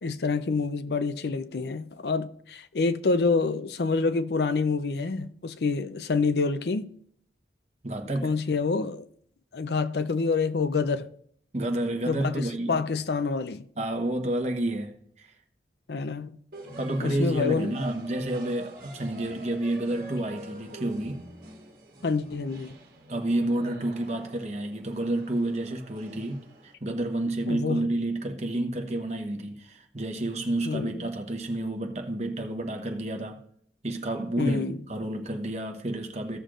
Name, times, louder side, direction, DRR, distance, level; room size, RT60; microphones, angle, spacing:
voice 1, 0.0-6.9 8.2-9.1 9.5-11.1 12.1-13.6 15.9-16.4 17.0-17.8 22.0-22.8 27.5-27.9 30.6-31.0 34.4-34.8, left 4 dB, 70° left, 0.5 m, -27 dB
voice 2, 7.8-8.3 11.5-12.8 13.8-15.3 16.8-21.2 23.1-33.5 33.8-36.4, right 1 dB, 40° right, 1.0 m, -30 dB
sound 1, 16.5-26.7, right 1 dB, 55° right, 1.6 m, -45 dB
15.5 x 6.5 x 2.5 m
head